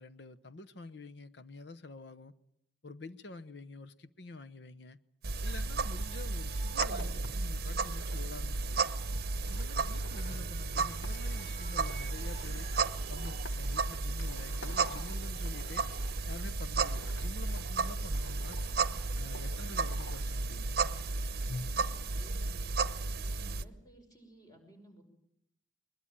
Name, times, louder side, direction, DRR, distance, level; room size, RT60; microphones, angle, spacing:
voice 1, 0.0-2.3 2.8-5.0 5.4-8.9 9.5-12.7 13.1-15.8 16.3-18.6 19.2-20.8, left 3 dB, 65° left, 0.9 m, -48 dB
sound 1, 5.2-23.6, right 3 dB, 55° right, 0.9 m, -34 dB
sound 2, 5.4-16.1, right 6 dB, 35° right, 1.3 m, -55 dB
sound 3, 5.8-21.9, left 2 dB, 80° left, 1.2 m, -50 dB
voice 2, 21.6-22.8 23.2-25.0, right 1 dB, 20° left, 5.6 m, -57 dB
21.5 x 21.5 x 9.0 m
head